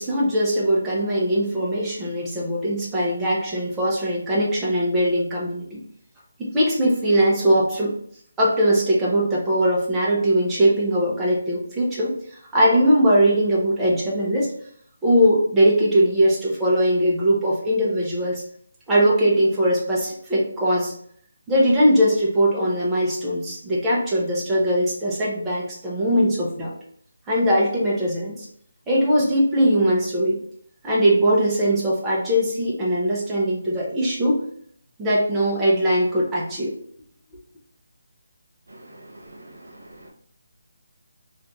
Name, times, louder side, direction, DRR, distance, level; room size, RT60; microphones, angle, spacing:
voice 1, 0.0-5.8 6.4-7.9 8.4-14.5 15.0-18.4 18.9-20.9 21.5-26.7 27.3-28.5 28.9-30.4 30.8-34.4 35.0-36.7, equal, 10° right, -6 dB, 0.7 m, -20 dB
voice 2, 38.7-40.1, right 1 dB, 85° right, 1 dB, 0.9 m, -45 dB
2.6 x 2.5 x 3.4 m, 0.63 s
figure-of-eight pair, 165°, 0 cm